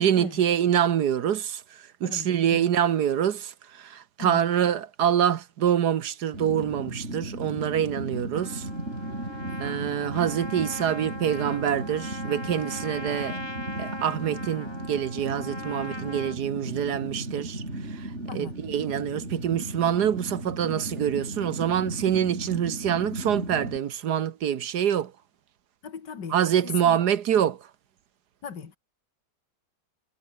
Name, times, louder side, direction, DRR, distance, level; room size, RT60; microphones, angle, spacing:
voice 1, 0.0-8.7 9.6-13.4 13.8-17.6 17.9-25.1 26.3-27.7, right 9 dB, 65° right, 1.5 m, -26 dB
voice 2, 2.0-2.7 4.2-4.4 9.4-9.6 13.3-13.5 18.3-18.5 25.8-27.0 28.4-28.8, left 6 dB, 70° left, 2.6 m, -38 dB
Fire, 6.3-23.8, right 1 dB, 35° right, 8.3 m, -36 dB
Trumpet, 8.3-16.4, left 1 dB, 15° left, 2.8 m, -40 dB
omnidirectional pair, 1.9 m